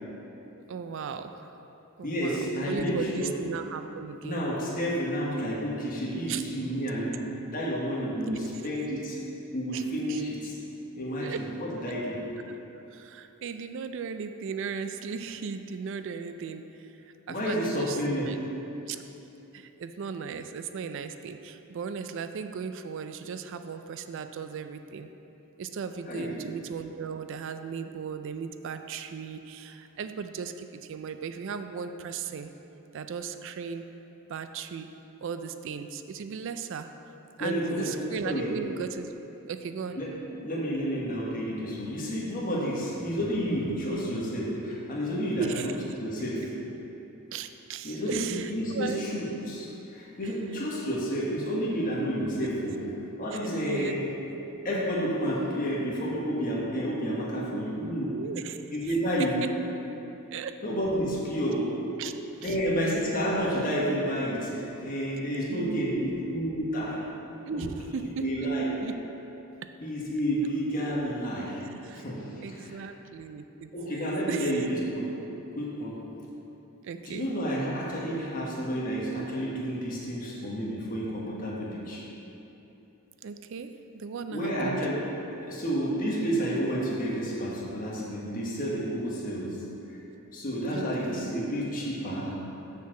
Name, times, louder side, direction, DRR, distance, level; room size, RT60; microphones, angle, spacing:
voice 1, 0.6-1.3 2.0-4.4 6.3-6.4 8.2-8.4 9.7-9.8 10.1-10.2 11.2-11.5 12.4-18.4 18.9-19.0 19.5-25.1 25.6-32.5 32.9-33.9 34.3-34.9 35.2-36.9 37.4-39.1 39.5-40.0 45.4-45.7 47.3-49.0 50.2-50.4 53.6-54.0 57.4-58.6 58.8-59.5 60.3-60.6 62.0-62.1 62.4-62.6 65.5-66.1 67.5-68.5 68.8-69.0 69.6-69.7 71.6-72.0 72.4-74.7 76.8-77.3 83.2-84.8 90.7-91.4, right 6 dB, 60° right, 9 dB, 0.3 m, -37 dB
voice 2, 2.0-3.3 4.2-9.2 9.5-10.6 11.0-12.2 17.3-18.3 26.1-26.3 37.4-37.9 38.2-38.5 40.0-40.1 40.4-45.7 46.0-46.5 47.8-52.8 53.2-54.1 54.6-58.1 58.7-59.4 60.6-61.8 62.4-67.0 67.5-67.7 68.2-68.7 69.8-71.6 71.9-72.8 73.7-75.1 75.5-76.0 77.1-82.0 84.3-85.1 85.3-89.6 90.3-92.4, equal, 40° left, -4 dB, 1.3 m, -30 dB
6.9 x 4.6 x 6.4 m, 3.0 s
head